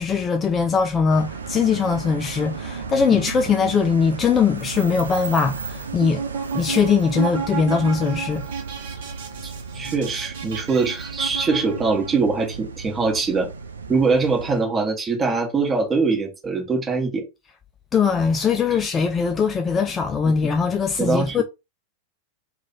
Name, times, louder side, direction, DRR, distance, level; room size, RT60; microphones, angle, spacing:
voice 1, 0.0-6.2 6.5-8.5 17.9-21.4, left 5 dB, 20° left, 0.4 m, -21 dB
sound 1, 1.1-14.6, right 5 dB, 75° right, 0.4 m, -35 dB
sound 2, 5.9-12.2, right 6 dB, 55° right, 0.9 m, -32 dB
voice 2, 9.7-13.5 13.9-17.2 21.0-21.4, right 4 dB, 20° right, 1.3 m, -22 dB
3.1 x 2.3 x 3.9 m
figure-of-eight pair, 90°, 0 cm